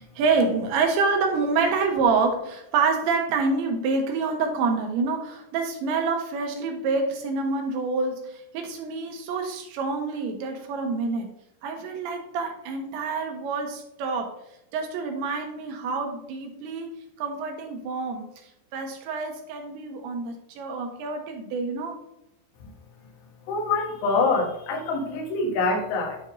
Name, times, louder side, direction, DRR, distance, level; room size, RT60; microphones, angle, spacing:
voice 1, 0.0-11.3 11.6-14.3 14.7-22.0, right 4 dB, 75° right, 3 dB, 3.1 m, -27 dB
voice 2, 23.5-26.2, left 3 dB, 85° left, 0 dB, 4.2 m, -25 dB
10.5 x 3.5 x 3.7 m, 0.81 s
omnidirectional pair, 5.6 m